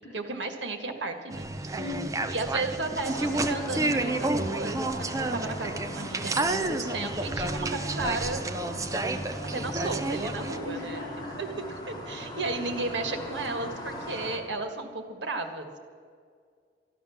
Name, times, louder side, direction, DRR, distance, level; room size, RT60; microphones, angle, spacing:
voice 1, 0.1-1.8 2.3-8.4 9.5-11.0 11.4-11.5 11.9-15.8, right 3 dB, 80° right, 5 dB, 1.7 m, -34 dB
sound 1, 1.3-10.6, right 2 dB, 20° right, 0.6 m, -30 dB
voice 2, 1.7-2.1 10.6-11.4, left 2 dB, 65° left, -6 dB, 4.8 m, -38 dB
sound 2, 3.0-14.4, left 1 dB, 25° left, 2.2 m, -40 dB
13.5 x 11.0 x 7.1 m, 2.1 s
head